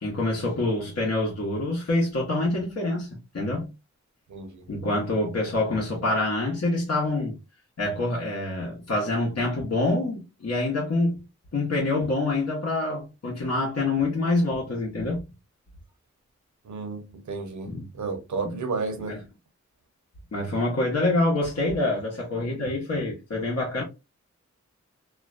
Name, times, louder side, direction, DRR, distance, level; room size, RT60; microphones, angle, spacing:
voice 1, 0.0-3.7 4.7-7.4 7.8-11.1 11.5-15.2 17.6-17.8 18.4-18.5 19.1-19.2 20.3-23.8, left 2 dB, 60° left, 0.9 m, -26 dB
voice 2, 4.3-4.6 16.7-19.2, right 4 dB, 75° right, 0.7 m, -32 dB
2.4 x 2.1 x 2.3 m
wide cardioid pair, 65°, 30 cm